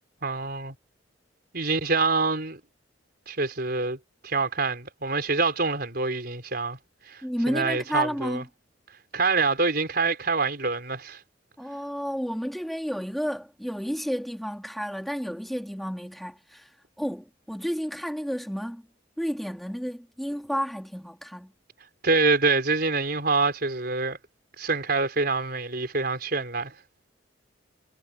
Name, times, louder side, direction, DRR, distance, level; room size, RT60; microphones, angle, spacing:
voice 1, 0.2-0.7 1.5-2.6 3.3-6.8 7.1-7.2 7.5-8.4 9.1-11.2 22.0-24.2 24.6-26.7, right 3 dB, 55° right, 5.1 m, -25 dB
voice 2, 7.2-8.4 11.6-16.7 17.0-18.8 19.2-21.5, equal, ahead, 2.4 m, -31 dB
head